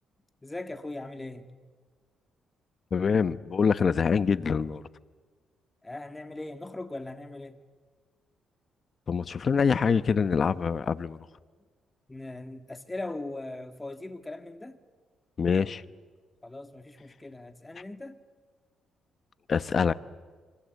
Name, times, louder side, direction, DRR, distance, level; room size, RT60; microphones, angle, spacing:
voice 1, 0.4-1.5 5.8-7.6 12.1-14.8 16.4-18.2, left 2 dB, 15° left, 2.1 m, -39 dB
voice 2, 2.9-4.8 9.1-11.2 15.4-15.8 19.5-19.9, left 6 dB, 45° left, 1.0 m, -25 dB
26.0 x 26.0 x 8.4 m
cardioid pair, 90°, 0 cm